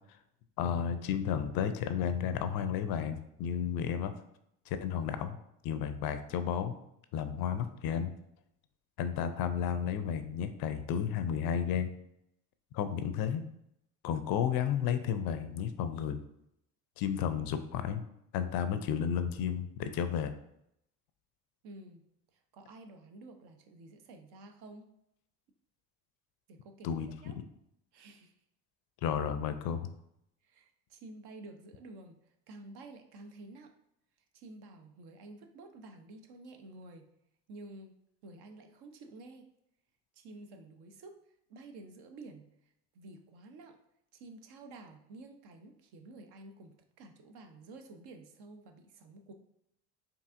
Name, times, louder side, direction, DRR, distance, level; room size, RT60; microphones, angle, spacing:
voice 1, 0.6-4.1 4.7-5.4 5.6-6.8 7.1-8.1 9.0-11.9 12.7-13.4 14.0-16.2 17.0-18.0 18.3-20.3 26.8-27.1 27.3-27.4 29.0-29.9, left 8 dB, 55° left, 10 dB, 0.5 m, -32 dB
voice 2, 21.6-22.0 22.3-24.9 26.5-26.9 27.2-27.4 27.9-28.3 30.4-33.7 34.3-37.1 37.5-37.9 38.2-39.5 40.1-41.2 41.5-43.8 44.1-49.3, right 2 dB, 60° right, 5 dB, 0.7 m, -51 dB
4.6 x 2.7 x 2.5 m, 0.77 s
hypercardioid pair, 60°, 45 cm